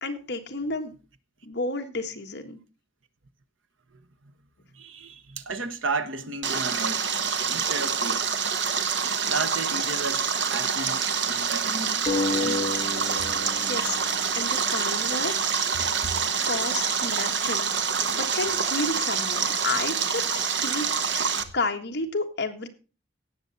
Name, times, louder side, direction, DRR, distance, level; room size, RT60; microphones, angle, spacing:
voice 1, 0.0-0.9 1.4-2.6 13.7-14.0 14.3-15.3 16.5-17.8 18.1-22.7, left 3 dB, 55° left, 1.6 m, -31 dB
voice 2, 4.7-7.0 7.5-8.3 9.3-12.0 12.4-12.8 16.0-16.2, right 3 dB, 85° right, 1.2 m, -33 dB
Stream, 6.4-21.4, right 6 dB, 65° right, 1.1 m, -26 dB
sound 1, 12.1-15.3, left 3 dB, 30° left, 2.1 m, -31 dB
17.0 x 7.0 x 4.1 m
head